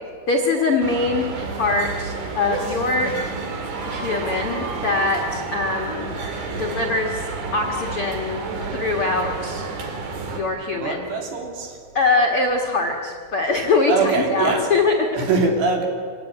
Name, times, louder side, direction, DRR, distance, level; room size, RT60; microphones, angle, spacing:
voice 1, 0.3-1.2 1.5-3.1 3.9-6.1 6.6-7.2 7.5-8.4 8.7-9.6 10.3-11.0 11.9-14.9, left 3 dB, 55° left, 1 dB, 1.5 m, -22 dB
sound 1, 0.8-10.4, right 4 dB, 50° right, 3.4 m, -30 dB
voice 2, 10.8-11.8 13.9-14.7 15.1-15.9, right 4 dB, 70° right, 2 dB, 5.1 m, -22 dB
25.5 x 17.5 x 9.7 m, 2.1 s
omnidirectional pair, 5.3 m